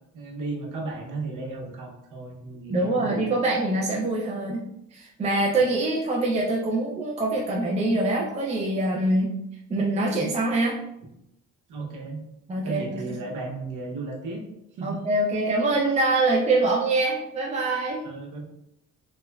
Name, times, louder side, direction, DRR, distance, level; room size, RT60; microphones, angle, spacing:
voice 1, 0.1-3.2 11.7-12.2 12.6-14.4 14.7-15.0 18.0-18.5, right 3 dB, 85° right, 0 dB, 0.8 m, -34 dB
voice 2, 2.7-4.6 4.9-9.3 9.7-10.8 12.5-13.1 14.8-18.0, right 2 dB, 25° right, -2 dB, 0.4 m, -24 dB
2.9 x 2.3 x 2.2 m, 0.79 s
cardioid pair, 90°, 30 cm